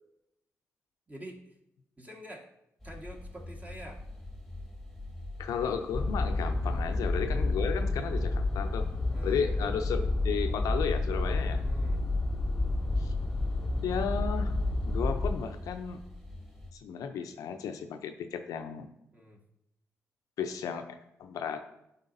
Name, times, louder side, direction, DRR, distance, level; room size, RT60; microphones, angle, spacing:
voice 1, 1.1-1.5 2.0-2.5 2.8-4.0 6.7-6.8 9.1-9.4 11.6-12.0 19.1-19.4, right 1 dB, 25° right, 1 dB, 1.5 m, -47 dB
sound 1, 2.8-16.7, left 1 dB, ahead, 1.5 m, -45 dB
voice 2, 5.4-8.9 9.2-11.6 13.0-13.1 13.8-14.6 14.9-16.0 16.8-18.9 20.4-21.6, left 7 dB, 80° left, 7 dB, 0.5 m, -34 dB
sound 2, 5.9-15.4, left 2 dB, 25° left, 0.6 m, -30 dB
9.8 x 4.0 x 2.7 m, 0.83 s
supercardioid pair, 55°, 6 cm